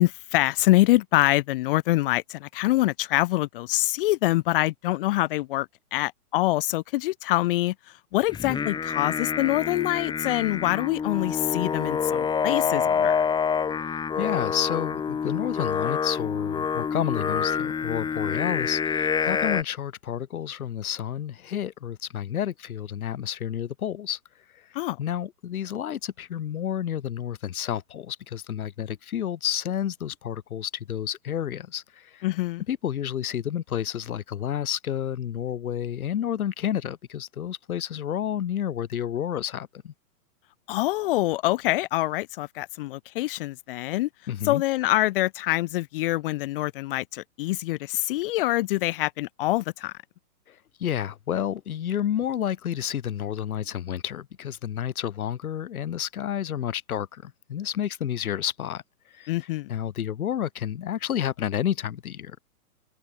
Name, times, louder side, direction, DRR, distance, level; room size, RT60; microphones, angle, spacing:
voice 1, 0.0-7.7 8.1-13.2 24.7-25.0 32.2-32.6 40.7-44.1 44.4-49.9 59.3-59.8, left 18 dB, 35° left, 1.2 m, -25 dB
Singing, 8.3-19.6, left 6 dB, 10° left, 1.9 m, -27 dB
voice 2, 13.8-24.2 25.0-32.3 32.7-39.9 44.3-44.6 50.5-50.6 50.8-58.8 59.1-59.3 59.7-62.4, left 10 dB, 65° left, 3.2 m, -30 dB
hypercardioid pair, 140°, 46 cm